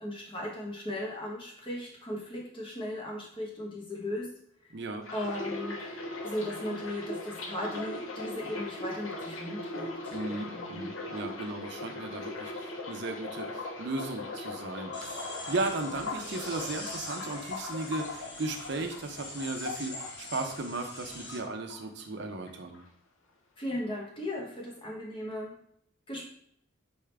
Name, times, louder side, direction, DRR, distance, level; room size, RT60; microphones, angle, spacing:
voice 1, 0.0-4.3 4.6-4.7 5.1-11.0 23.6-25.6 26.1-26.2, left 1 dB, 25° left, -3 dB, 1.1 m, -37 dB
voice 2, 4.7-5.1 10.1-22.8, right 2 dB, 55° right, 5 dB, 0.6 m, -36 dB
sound 1, 5.0-21.0 21.3-22.2 22.5-22.8, left 2 dB, 80° left, 0.9 m, -39 dB
sound 2, 14.9-21.4, left 2 dB, 55° left, 1.2 m, -43 dB
4.3 x 3.6 x 3.3 m, 0.70 s
head